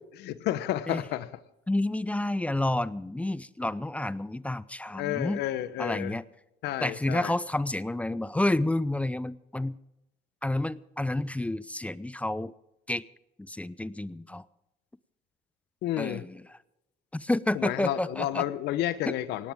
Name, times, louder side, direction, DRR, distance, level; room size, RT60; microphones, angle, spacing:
voice 1, 0.1-1.3 4.9-6.2 6.6-7.3 15.8-16.2 17.5-19.5, left 13 dB, 80° left, 0.9 m, -31 dB
voice 2, 1.7-5.4 5.8-6.2 6.8-9.8 10.4-12.5 12.9-13.0 13.4-14.4 16.0-16.6 17.1-18.4 19.1-19.2, left 1 dB, 10° left, 0.5 m, -30 dB
18.5 x 17.0 x 3.6 m
cardioid pair, 110°, 17 cm